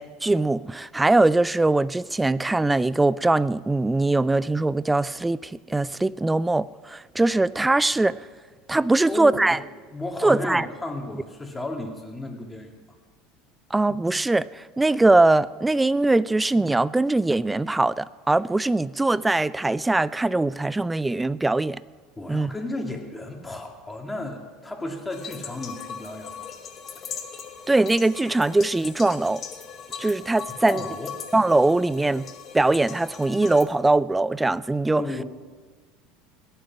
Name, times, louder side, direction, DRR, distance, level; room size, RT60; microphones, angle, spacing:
voice 1, 0.0-8.2 8.7-9.6 10.2-10.7 13.7-21.8 22.3-22.5 27.7-29.4 30.0-30.8 31.3-32.3 32.5-35.0, right 2 dB, 10° right, 20 dB, 0.4 m, -21 dB
voice 2, 9.0-9.6 9.9-12.8 22.2-26.5 30.6-31.1 35.0-35.2, left 2 dB, 10° left, 2 dB, 2.5 m, -33 dB
sound 1, 25.1-33.6, left 7 dB, 35° left, 1.5 m, -39 dB
17.0 x 11.5 x 5.9 m, 1.4 s
figure-of-eight pair, 70°, 0 cm